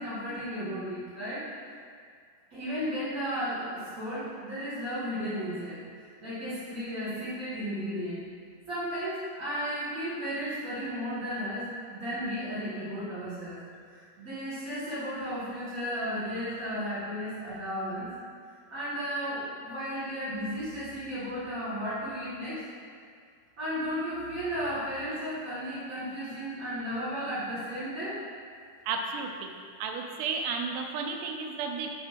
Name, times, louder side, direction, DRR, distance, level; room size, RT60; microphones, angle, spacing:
voice 1, 0.0-1.5 2.5-8.2 8.7-13.6 13.8-18.1 18.7-22.6 23.6-28.2, equal, 50° right, -13 dB, 0.9 m, -34 dB
voice 2, 28.9-29.5 29.8-31.9, right 5 dB, 85° right, 3 dB, 2.8 m, -33 dB
5.9 x 5.1 x 5.1 m, 2.1 s
omnidirectional pair, 4.8 m